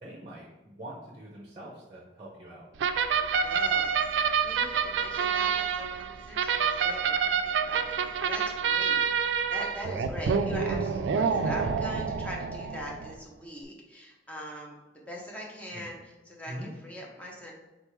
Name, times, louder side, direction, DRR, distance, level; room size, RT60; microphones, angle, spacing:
voice 1, 0.0-2.7 15.7-15.9 16.5-16.7, right 1 dB, 30° right, -3 dB, 0.7 m, -43 dB
sound 1, 2.8-13.1, right 6 dB, 90° right, 0.3 m, -28 dB
voice 2, 3.2-4.0 4.4-14.8 15.1-17.5, equal, 10° left, -2 dB, 0.7 m, -42 dB
4.0 x 3.5 x 3.1 m, 1.1 s
head